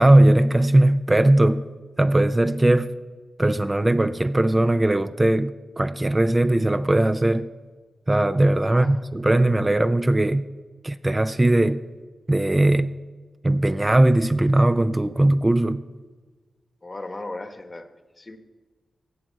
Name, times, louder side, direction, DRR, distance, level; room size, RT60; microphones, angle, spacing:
voice 1, 0.0-1.6 2.0-2.9 3.4-7.5 8.1-10.4 10.8-11.8 12.3-12.9 13.4-15.8, right 1 dB, 25° right, 0.4 m, -19 dB
voice 2, 8.7-9.0 16.8-17.9 18.2-18.4, left 2 dB, 35° left, 1.1 m, -36 dB
16.5 x 6.2 x 4.6 m
cardioid pair, 50°, 0 cm